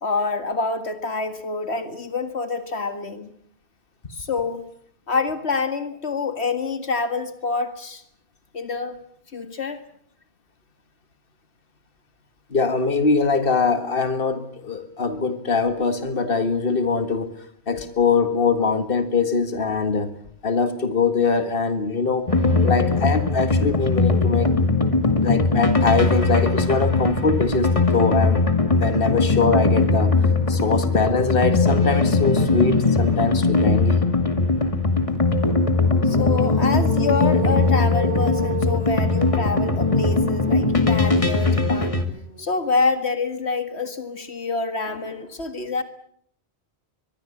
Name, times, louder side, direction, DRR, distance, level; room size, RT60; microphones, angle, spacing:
voice 1, 0.0-3.3 4.1-4.6 5.1-8.0 8.5-9.0 9.3-9.8 36.0-42.0 42.4-45.8, left 4 dB, 80° left, 2.1 m, -26 dB
voice 2, 12.5-17.4 17.7-20.1 20.4-22.3 22.6-24.5 25.2-28.4 28.8-30.2 30.5-34.0, left 4 dB, 60° left, 2.1 m, -22 dB
sound 1, 22.3-42.0, left 3 dB, 30° left, 2.3 m, -20 dB
sound 2, 29.8-29.9 30.3-34.0 35.6-42.9, right 1 dB, 70° right, 6.1 m, -34 dB
23.5 x 22.0 x 8.5 m
omnidirectional pair, 1.1 m